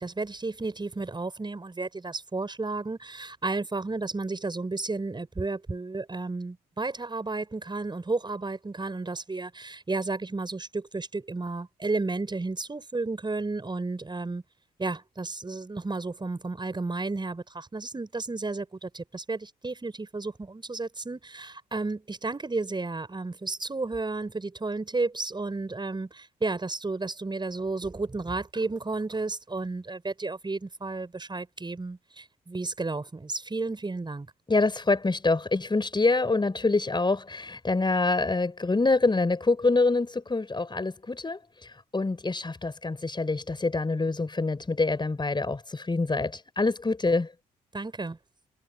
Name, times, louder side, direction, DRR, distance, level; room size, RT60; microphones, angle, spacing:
voice 1, 0.0-14.4 14.8-34.3 47.7-48.2, right 3 dB, 25° right, 5.7 m, -32 dB
voice 2, 34.5-47.3, left 3 dB, 25° left, 4.8 m, -26 dB
figure-of-eight pair, 40°, 20 cm